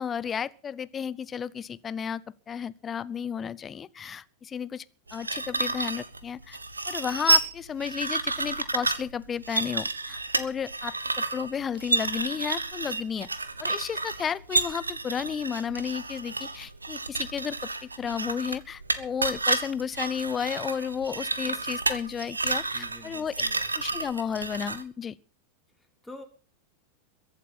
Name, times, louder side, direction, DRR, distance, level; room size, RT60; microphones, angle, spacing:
voice 1, 0.0-4.8 5.1-6.6 6.9-13.3 13.6-23.3 23.8-25.2, left 7 dB, 20° left, 0.7 m, -33 dB
sound 1, 5.1-24.8, right 3 dB, 80° right, 1.2 m, -30 dB
voice 2, 22.7-24.0 25.8-26.2, left 1 dB, 5° left, 3.2 m, -48 dB
22.0 x 8.3 x 5.9 m
figure-of-eight pair, 90°, 0 cm